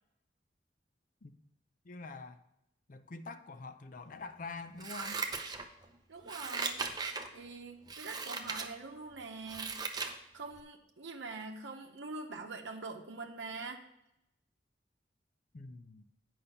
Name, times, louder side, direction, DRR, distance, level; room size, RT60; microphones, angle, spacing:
voice 1, 1.8-2.4 2.9-5.3 15.5-16.1, left 3 dB, 45° left, 10 dB, 0.5 m, -46 dB
Scissors, 4.8-5.9 6.2-7.3 7.9-8.7 9.1-10.2 10.6-10.7, right 4 dB, 20° right, 0.7 m, -38 dB
voice 2, 6.1-6.8 7.3-9.9 10.3-13.8, right 3 dB, 85° right, 2 dB, 0.9 m, -44 dB
8.8 x 5.5 x 5.5 m, 0.84 s
head